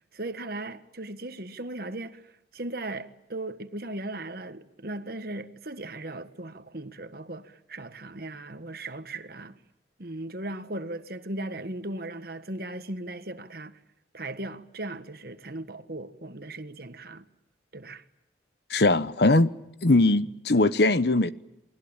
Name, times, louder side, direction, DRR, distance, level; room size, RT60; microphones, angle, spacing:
voice 1, 0.1-2.2 2.5-9.6 10.0-13.8 14.1-17.3 17.7-18.0, right 2 dB, 50° right, 1.6 m, -37 dB
voice 2, 18.7-19.5 19.8-21.3, left 2 dB, 60° left, 1.0 m, -21 dB
29.0 x 21.5 x 8.9 m
head